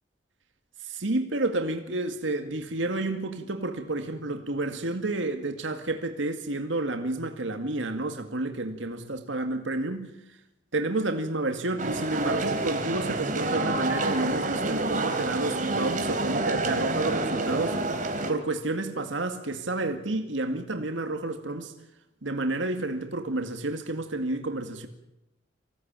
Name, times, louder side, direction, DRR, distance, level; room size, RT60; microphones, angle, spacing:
voice 1, 0.8-10.1 10.7-17.8 18.3-21.7 22.2-24.9, right 2 dB, 85° right, 2.1 m, -30 dB
sound 1, 11.8-18.3, right 2 dB, 45° right, 3.2 m, -28 dB
25.5 x 17.0 x 9.0 m
head